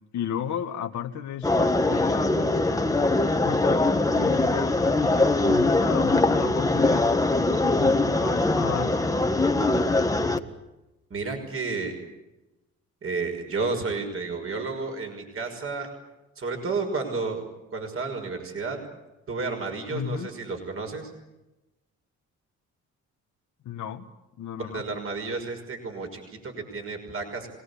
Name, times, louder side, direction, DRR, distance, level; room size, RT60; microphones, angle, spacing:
voice 1, 0.1-2.6 3.4-7.1 7.6-9.8 19.9-20.3 23.6-24.1 24.4-24.8, left 9 dB, 70° left, 3 dB, 1.6 m, -34 dB
sound 1, 1.4-10.4, left 2 dB, 10° left, 1.7 m, -22 dB
voice 2, 11.1-12.0 13.0-15.9 16.4-17.4 17.7-18.8 19.3-21.1 24.6-27.5, right 4 dB, 45° right, 4 dB, 5.9 m, -31 dB
27.0 x 19.0 x 8.5 m, 0.99 s
cardioid pair, 90°, 30 cm